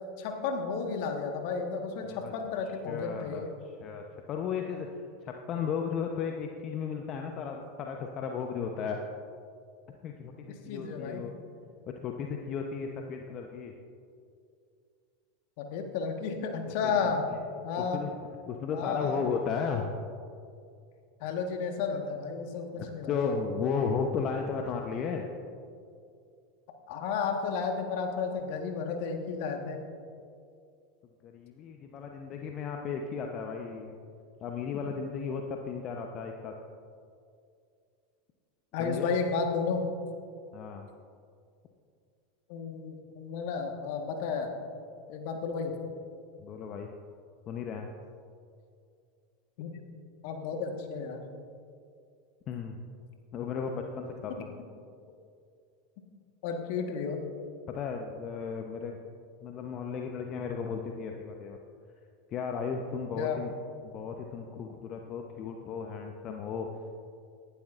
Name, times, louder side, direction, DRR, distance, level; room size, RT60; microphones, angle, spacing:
voice 1, 0.2-3.5 10.5-11.2 15.6-17.3 17.6-18.0 18.7-19.2 21.2-23.3 26.9-29.8 38.7-39.8 42.5-44.5 45.1-45.8 49.6-49.8 50.2-51.2 56.4-57.2 63.2-63.4, left 5 dB, 55° left, 4 dB, 1.5 m, -32 dB
voice 2, 2.7-9.0 10.0-11.3 12.0-13.7 16.8-17.4 17.8-18.1 18.5-20.0 22.8-25.3 31.2-34.0 34.4-36.5 38.8-39.2 40.5-40.9 46.4-46.9 47.5-47.9 52.5-52.8 53.3-54.5 57.7-59.0 59.4-61.6 62.3-63.5 63.8-66.7, left 6 dB, 40° left, 3 dB, 0.9 m, -35 dB
18.5 x 11.5 x 2.6 m, 2.4 s
figure-of-eight pair, 85°, 0 cm